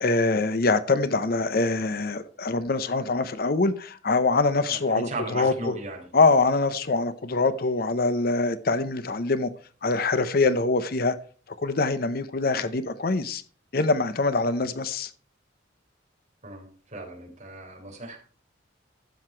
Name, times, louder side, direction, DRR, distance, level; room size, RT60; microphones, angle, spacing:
voice 1, 0.0-5.7 6.1-9.5 9.8-11.2 11.6-13.4 13.7-15.1, left 3 dB, 50° left, 0.7 m, -24 dB
voice 2, 4.7-6.0 16.4-18.2, right 2 dB, 35° right, 3.7 m, -37 dB
12.5 x 7.9 x 4.4 m
head